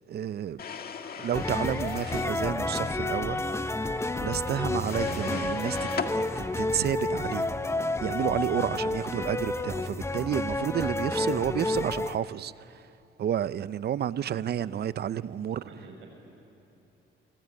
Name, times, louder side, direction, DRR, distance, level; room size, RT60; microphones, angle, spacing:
voice 1, 0.1-0.6 1.1-3.4 4.2-5.9 6.1-7.5 8.0-12.9 13.2-15.6, right 10 dB, 55° right, 0.6 m, -31 dB
sound 1, 0.6-2.4 4.8-6.1, left 6 dB, 50° left, 1.7 m, -37 dB
sound 2, 1.3-12.2, left 2 dB, 15° left, 0.9 m, -30 dB
voice 2, 15.7-16.1, right 5 dB, 80° right, 7.2 m, -47 dB
25.5 x 23.5 x 9.0 m
cardioid pair, 90°, 20 cm